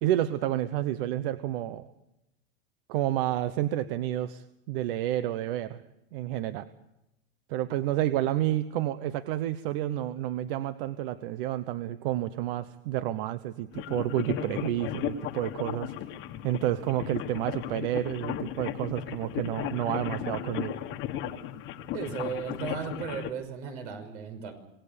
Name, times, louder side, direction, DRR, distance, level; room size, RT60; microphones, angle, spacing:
voice 1, 0.0-1.9 2.9-5.8 6.1-6.7 7.5-15.9 16.4-20.7, right 13 dB, 50° right, 13 dB, 1.0 m, -30 dB
sound 1, 13.7-23.3, left 10 dB, 30° left, 1.6 m, -35 dB
voice 2, 21.9-24.5, right 7 dB, 65° right, 8 dB, 6.0 m, -36 dB
27.0 x 18.5 x 6.9 m, 0.93 s
supercardioid pair, 150°, 37 cm